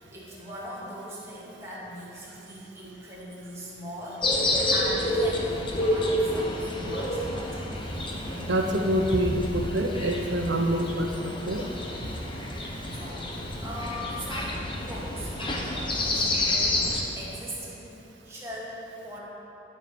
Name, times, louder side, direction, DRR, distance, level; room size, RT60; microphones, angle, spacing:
voice 1, 0.0-5.5 5.8-7.7 12.9-16.9 17.1-19.2, equal, 15° right, -7 dB, 2.3 m, -40 dB
sound 1, 4.2-17.0, left 1 dB, 25° left, 1.0 m, -29 dB
voice 2, 8.3-11.1 11.5-11.6, right 1 dB, 80° right, 4 dB, 1.0 m, -26 dB
12.0 x 6.6 x 5.2 m, 2.8 s
head